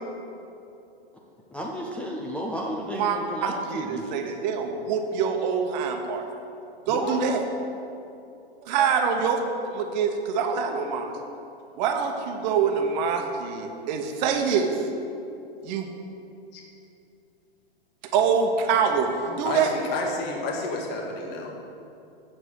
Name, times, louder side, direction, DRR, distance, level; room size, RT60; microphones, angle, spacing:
voice 1, 1.5-4.2 6.9-7.2, equal, 5° left, -3 dB, 0.4 m, -33 dB
voice 2, 2.9-6.2 6.9-7.4 8.6-11.2 11.8-14.9 15.6-15.9 18.1-19.7, right 6 dB, 45° right, 4 dB, 1.1 m, -25 dB
voice 3, 19.5-21.5, left 2 dB, 35° left, 0 dB, 1.6 m, -31 dB
7.5 x 7.0 x 6.4 m, 2.7 s
hypercardioid pair, 135°, 31 cm